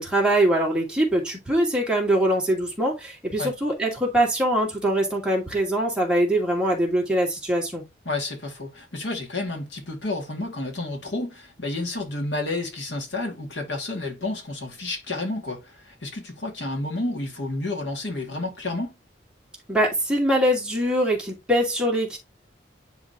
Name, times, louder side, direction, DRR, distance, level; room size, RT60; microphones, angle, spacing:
voice 1, 0.0-7.8 19.7-22.2, right 1 dB, 5° right, 2.4 m, -23 dB
voice 2, 8.0-18.9, left 2 dB, 85° left, 2.4 m, -30 dB
9.9 x 4.0 x 3.0 m
head